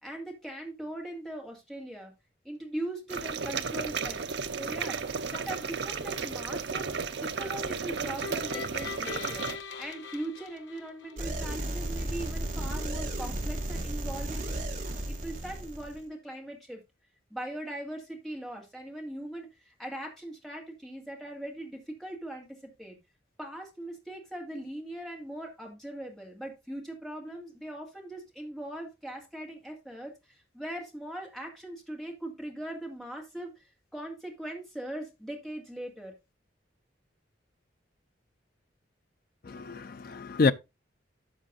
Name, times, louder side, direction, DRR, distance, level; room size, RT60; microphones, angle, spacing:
voice 1, 0.0-2.1 2.4-4.3 4.5-9.5 9.8-14.6 15.1-16.8 17.3-23.0 23.4-33.6 33.9-36.1, right 1 dB, ahead, 2.1 m, -40 dB
sound 1, 3.1-9.6, right 5 dB, 65° right, 0.7 m, -34 dB
sound 2, 8.2-11.4, left 5 dB, 75° left, 1.2 m, -41 dB
sound 3, 11.2-16.0, right 1 dB, 40° right, 1.8 m, -34 dB
voice 2, 39.5-40.5, left 4 dB, 50° left, 0.4 m, -27 dB
12.5 x 7.2 x 2.5 m
head